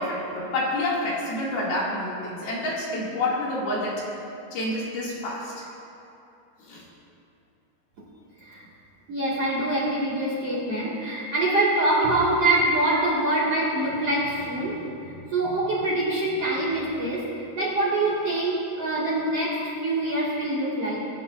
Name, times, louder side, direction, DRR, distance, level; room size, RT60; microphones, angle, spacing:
voice 1, 0.0-4.0 4.5-5.7 6.6-6.8, left 1 dB, 65° left, -6 dB, 4.0 m, -28 dB
voice 2, 9.1-17.2 17.6-21.0, right 2 dB, 45° right, -7 dB, 2.4 m, -25 dB
24.0 x 11.5 x 2.5 m, 2.8 s
omnidirectional pair, 5.0 m